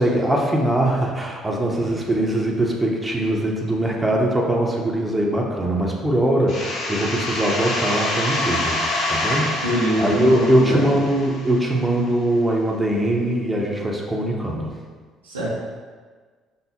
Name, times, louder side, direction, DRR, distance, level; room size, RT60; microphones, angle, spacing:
voice 1, 0.0-8.8 9.1-9.5 10.0-14.7, right 1 dB, 10° right, -1 dB, 0.8 m, -21 dB
Sweep - Slight Effected A, 6.5-12.0, left 1 dB, 55° left, 0.8 m, -26 dB
voice 2, 9.6-11.0 15.2-15.5, equal, 85° right, -7 dB, 1.0 m, -24 dB
5.4 x 2.0 x 4.4 m, 1.5 s
hypercardioid pair, 55°, 0 cm